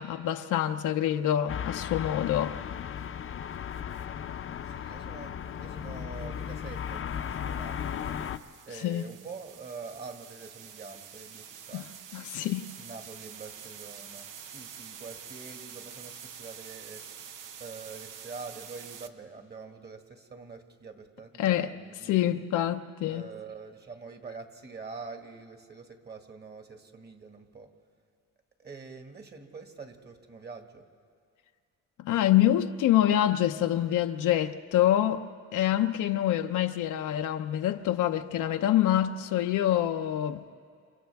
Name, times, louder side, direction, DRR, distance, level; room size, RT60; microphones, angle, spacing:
voice 1, 0.0-2.6 8.8-9.0 11.7-11.8 12.1-12.7 21.4-21.7 22.1-23.2 32.0-35.3 35.5-40.4, left 12 dB, 80° left, 0.7 m, -26 dB
sound 1, 1.5-8.4, left 8 dB, 45° left, 0.6 m, -36 dB
sound 2, 3.7-4.0 6.2-19.1, right 8 dB, 90° right, 0.9 m, -47 dB
voice 2, 4.6-8.1 8.7-11.9 12.8-17.1 17.6-22.5 23.1-27.7 28.6-30.9, right 4 dB, 35° right, 1.9 m, -45 dB
30.0 x 27.5 x 3.5 m
cardioid pair, 90°, 30 cm